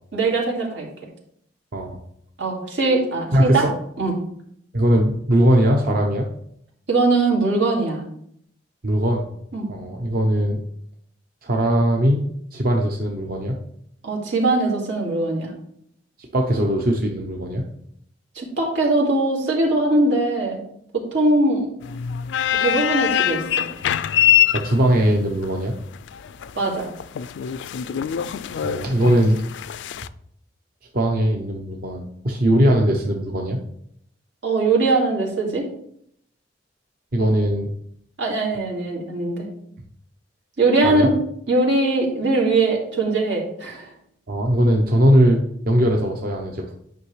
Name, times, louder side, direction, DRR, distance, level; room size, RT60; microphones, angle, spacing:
voice 1, 0.1-0.9 2.4-3.7 4.0-4.1 6.9-8.0 9.5-9.7 14.0-15.5 18.4-20.6 20.9-21.7 22.6-23.7 26.6-26.9 34.4-35.6 38.2-39.5 40.6-41.1 41.5-43.9, right 2 dB, 90° right, -2 dB, 2.2 m, -21 dB
voice 2, 3.3-3.7 4.7-6.3 8.8-9.3 9.7-10.6 11.4-12.2 12.5-13.6 16.3-17.6 24.5-25.7 28.6-29.4 30.9-33.6 37.1-37.7 40.8-41.1 44.3-46.7, right 1 dB, 55° right, 1 dB, 0.8 m, -20 dB
sound 1, 21.8-30.1, left 10 dB, 70° left, 0.3 m, -24 dB
9.4 x 5.5 x 3.2 m, 0.71 s
head